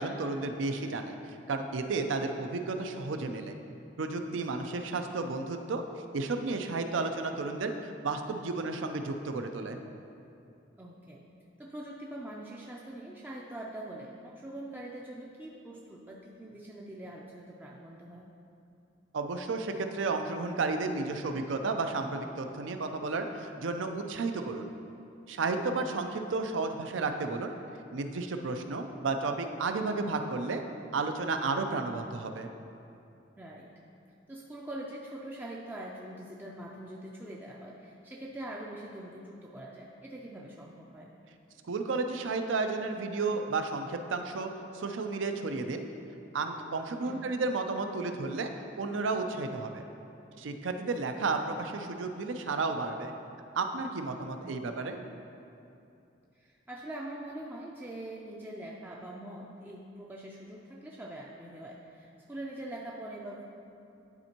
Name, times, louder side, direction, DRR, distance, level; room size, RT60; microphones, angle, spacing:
voice 1, 0.0-3.6 4.0-5.8 6.1-9.8 19.1-24.7 25.3-27.5 27.9-30.6 30.9-32.5 41.6-45.8 46.3-48.5 48.8-49.8 50.4-53.1 53.6-55.0, right 3 dB, 75° right, 6 dB, 0.5 m, -32 dB
voice 2, 10.8-11.2 11.6-18.3 33.4-33.7 34.3-41.1 47.0-47.3 51.2-51.5 54.4-54.7 56.3-63.4, right 1 dB, 10° right, -4 dB, 0.4 m, -43 dB
10.5 x 4.3 x 2.9 m, 2.7 s
head